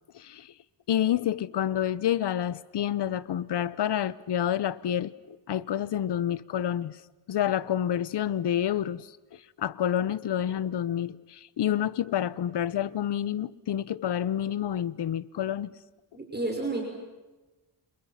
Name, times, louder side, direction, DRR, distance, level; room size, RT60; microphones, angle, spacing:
voice 1, 0.1-0.5 0.9-7.0 7.3-9.1 9.6-15.7, left 10 dB, 65° left, 1.0 m, -28 dB
voice 2, 16.1-16.8, right 2 dB, 20° right, 5.9 m, -30 dB
29.0 x 27.5 x 5.9 m
cardioid pair, 110°, 44 cm